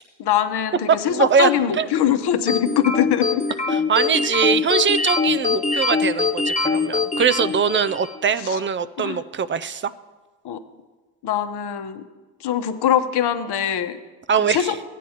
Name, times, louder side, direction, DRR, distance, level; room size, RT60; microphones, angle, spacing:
voice 1, 0.2-3.4 8.4-8.6 9.0-9.2 10.4-10.6 11.2-12.0 12.4-14.0 14.4-14.7, left 9 dB, 55° left, 8 dB, 1.0 m, -22 dB
voice 2, 0.9-1.9 3.7-9.9 14.3-14.7, right 6 dB, 30° right, 15 dB, 0.3 m, -22 dB
sound 1, 2.5-8.2, left 4 dB, 15° left, 0.7 m, -23 dB
15.0 x 9.2 x 2.9 m, 1.2 s
supercardioid pair, 60°, 48 cm